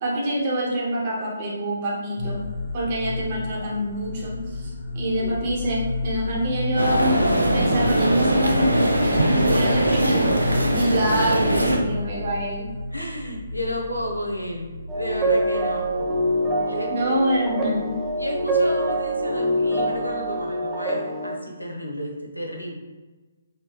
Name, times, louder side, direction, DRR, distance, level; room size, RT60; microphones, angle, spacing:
voice 1, 0.0-2.4 2.7-7.2 7.5-10.4 10.7-12.7 16.9-17.9, right 1 dB, 35° right, -4 dB, 1.0 m, -26 dB
sound 1, 2.2-20.5, left 2 dB, 15° left, 0.8 m, -33 dB
sound 2, 6.8-11.8, right 1 dB, 85° right, 0.5 m, -21 dB
voice 2, 10.7-11.0 12.9-15.9 16.7-17.2 18.2-22.7, equal, 90° left, 0 dB, 0.7 m, -32 dB
sound 3, 14.9-21.3, right 1 dB, 10° right, 0.5 m, -25 dB
4.2 x 2.2 x 3.0 m, 1.2 s
figure-of-eight pair, 135°, 0 cm